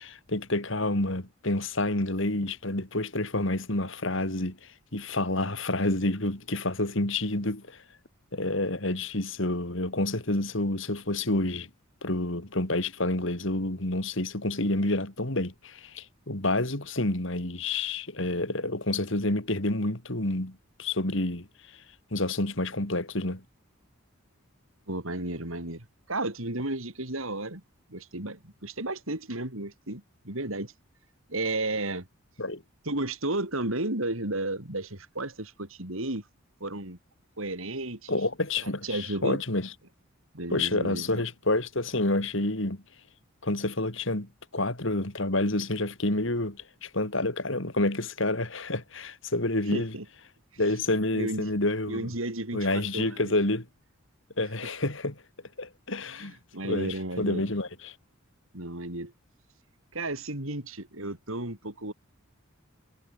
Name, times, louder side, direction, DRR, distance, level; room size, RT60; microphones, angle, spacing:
voice 1, 0.0-4.6 4.9-7.8 8.3-11.7 12.0-21.5 22.1-23.4 32.4-32.6 38.1-39.7 40.5-42.8 43.4-49.9 50.6-52.1 52.5-53.7 54.4-55.2 55.6-56.4 56.6-57.9, left 2 dB, 60° left, 3.0 m, -29 dB
voice 2, 24.9-27.6 27.9-30.7 31.3-32.1 32.8-36.2 36.6-37.0 37.4-38.2 38.6-39.4 40.3-41.2 49.7-50.0 51.2-51.5 51.9-53.3 56.2-57.5 58.5-59.1 59.9-61.9, right 2 dB, 70° right, 4.6 m, -33 dB
head